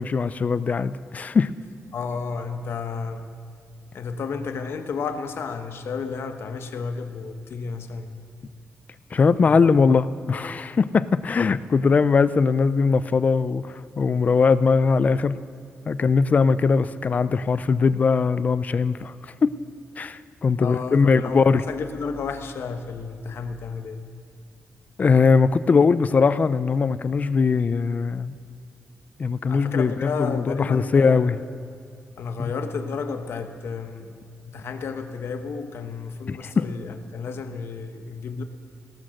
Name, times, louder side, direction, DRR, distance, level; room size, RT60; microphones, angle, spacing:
voice 1, 0.0-1.5 9.1-15.4 15.9-19.1 19.4-19.5 20.0-21.6 25.0-28.3 29.2-31.4 36.3-36.6, left 5 dB, 35° left, 15 dB, 0.4 m, -20 dB
voice 2, 1.9-3.4 3.9-8.3 9.4-10.0 20.6-24.1 29.5-31.6 32.2-38.4, left 5 dB, 65° left, 7 dB, 1.1 m, -32 dB
17.0 x 12.5 x 6.5 m, 2.5 s
wide cardioid pair, 150°, 4 cm